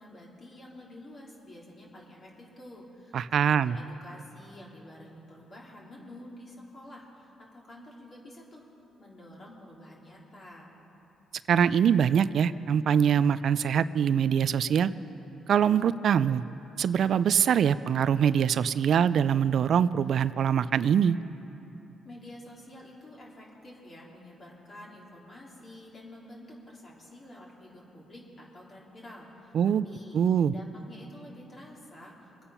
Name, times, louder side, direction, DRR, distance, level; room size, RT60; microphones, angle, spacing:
voice 1, 0.0-8.6 9.0-10.7 22.0-30.2 30.5-32.4, left 1 dB, 40° left, -4 dB, 3.4 m, -49 dB
voice 2, 3.1-3.8 11.5-14.9 15.5-16.4 16.8-21.2 29.5-29.8 30.1-30.5, right 8 dB, 60° right, 15 dB, 0.4 m, -23 dB
23.5 x 8.7 x 5.7 m, 2.9 s
cardioid pair, 90°, 0 cm